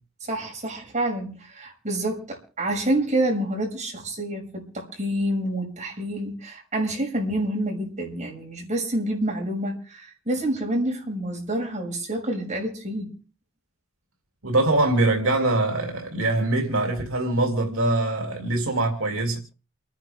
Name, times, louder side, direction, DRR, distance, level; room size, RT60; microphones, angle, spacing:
voice 1, 0.3-13.2, right 1 dB, 35° right, 6.7 m, -28 dB
voice 2, 14.4-19.4, right 2 dB, 75° right, 3.1 m, -23 dB
29.0 x 10.5 x 3.7 m
head